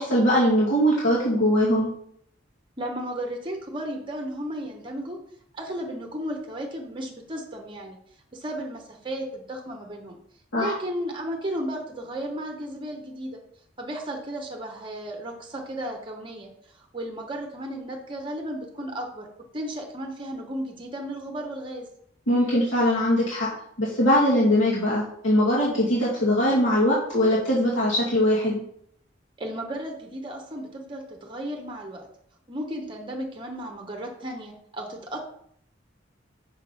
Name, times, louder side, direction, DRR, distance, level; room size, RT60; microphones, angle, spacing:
voice 1, 0.0-1.9 10.5-10.8 22.3-23.5 23.8-28.6, equal, 75° left, -7 dB, 2.0 m, -21 dB
voice 2, 2.8-5.2 5.5-8.0 8.3-10.2 10.6-13.4 13.8-19.3 19.5-21.9 29.4-32.1 32.5-35.2, right 1 dB, 25° right, 2 dB, 0.9 m, -34 dB
6.2 x 3.8 x 5.3 m, 0.68 s
head